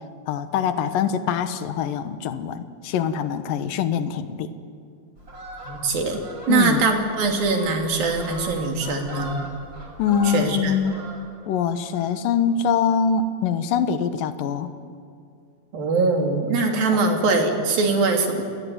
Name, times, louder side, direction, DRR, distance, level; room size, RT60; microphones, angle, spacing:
voice 1, 0.3-4.5 6.5-6.8 10.0-11.0 11.5-14.7, left 7 dB, 80° left, 10 dB, 2.8 m, -23 dB
Fowl, 5.1-11.5 11.8-12.1, right 1 dB, 25° right, 5.4 m, -39 dB
voice 2, 5.7-6.2 6.5-9.4 10.2-10.7 15.7-18.4, right 3 dB, 85° right, 2 dB, 4.7 m, -22 dB
29.0 x 20.5 x 9.5 m, 2.3 s
omnidirectional pair, 4.0 m